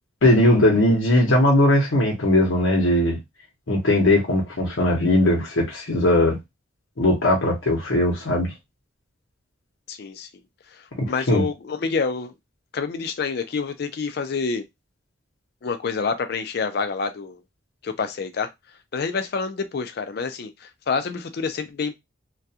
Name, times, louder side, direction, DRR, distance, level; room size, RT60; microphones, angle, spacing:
voice 1, 0.2-3.2 3.7-6.4 7.0-8.5 11.0-11.5, left 1 dB, 80° left, 0.8 m, -19 dB
voice 2, 9.9-10.3 10.7-12.3 12.7-14.6 15.6-17.4 17.8-18.5 18.9-22.0, left 5 dB, 55° left, 0.4 m, -27 dB
2.3 x 2.2 x 2.7 m
head